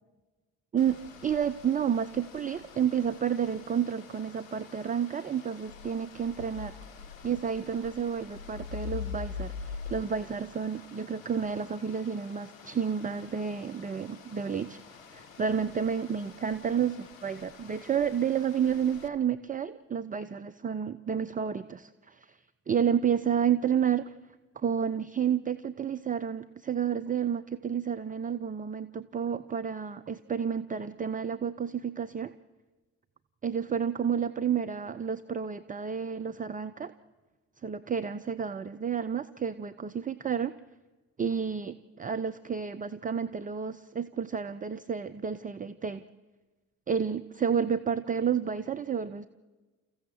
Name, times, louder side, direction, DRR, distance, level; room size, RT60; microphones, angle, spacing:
voice 1, 0.7-6.8 7.2-14.8 15.1-22.2 22.7-24.1 24.6-32.3 33.4-36.9 37.6-40.6 41.2-46.0 46.9-49.3, right 7 dB, 20° right, 11 dB, 0.7 m, -30 dB
sound 1, 0.8-19.1, left 6 dB, 75° left, 1.2 m, -45 dB
29.5 x 15.0 x 7.5 m, 1.3 s
figure-of-eight pair, 50°, 41 cm